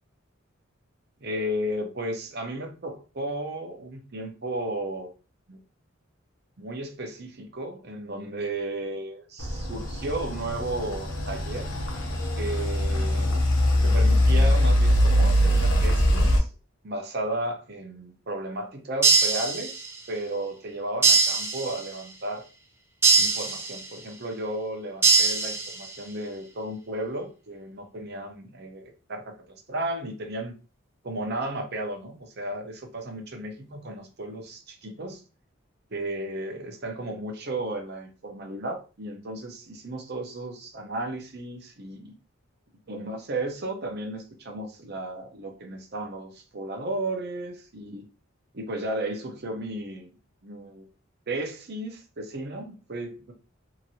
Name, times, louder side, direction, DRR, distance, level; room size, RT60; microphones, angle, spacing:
voice 1, 1.2-5.1 5.5-5.6 6.6-11.7 12.4-13.4 13.7-16.5 16.8-22.4 23.2-30.5 31.0-35.2 35.9-42.2 42.9-48.0 48.5-50.1 50.4-50.9 51.3-53.3, right 1 dB, 50° right, 3 dB, 0.7 m, -34 dB
sound 1, 9.4-16.4, equal, 75° left, 0.8 m, -22 dB
sound 2, 19.0-20.1 21.0-22.1 23.0-24.1 25.0-26.1, right 4 dB, 10° right, 0.4 m, -22 dB
2.9 x 2.6 x 2.7 m, 0.33 s
head